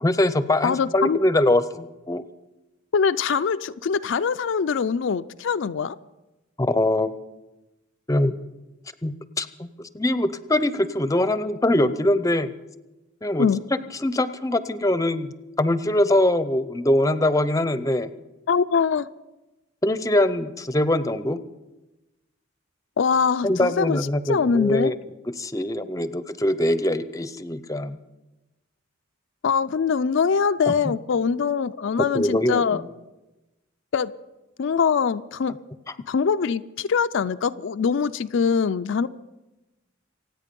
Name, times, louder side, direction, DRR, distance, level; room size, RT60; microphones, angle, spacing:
voice 1, 0.0-2.2 6.6-7.1 8.1-8.4 9.0-9.7 9.9-12.5 13.2-13.5 14.0-15.3 15.6-18.1 19.8-21.4 23.4-25.0 25.4-28.0 30.7-30.9 32.1-32.9, left 1 dB, 15° left, 13 dB, 0.6 m, -22 dB
voice 2, 0.6-1.2 2.9-6.0 13.4-13.6 18.5-19.1 23.0-24.0 24.3-24.9 29.4-32.8 33.9-34.1 34.6-35.5 36.1-39.1, left 6 dB, 65° left, 11 dB, 0.4 m, -23 dB
26.5 x 9.1 x 5.3 m, 1.0 s
head